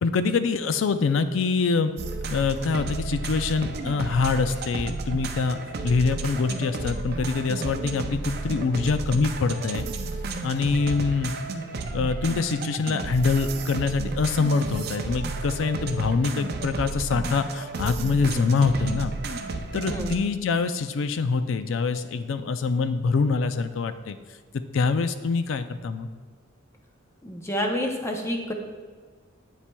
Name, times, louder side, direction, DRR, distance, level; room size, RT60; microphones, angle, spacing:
voice 1, 0.0-1.9 2.3-5.6 5.8-9.9 10.4-11.4 11.9-19.1 19.7-24.2 24.7-26.1, left 4 dB, 75° left, 11 dB, 0.4 m, -25 dB
sound 1, 2.0-20.2, right 3 dB, 50° right, 0.5 m, -32 dB
voice 2, 27.2-28.5, equal, 15° left, 2 dB, 0.6 m, -28 dB
8.4 x 7.2 x 2.2 m, 1.5 s
head